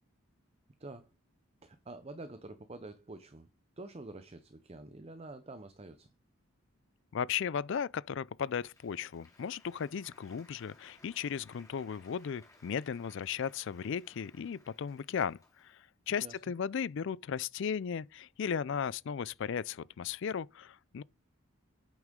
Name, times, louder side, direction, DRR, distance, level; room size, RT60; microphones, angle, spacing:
voice 1, 1.6-3.5 3.8-6.1 16.2-16.4, right 2 dB, 25° right, 0.6 m, -47 dB
voice 2, 7.1-21.0, left 7 dB, 55° left, 0.3 m, -36 dB
Applause, 8.3-15.9, left 2 dB, 15° left, 2.4 m, -62 dB
8.8 x 6.2 x 3.7 m
head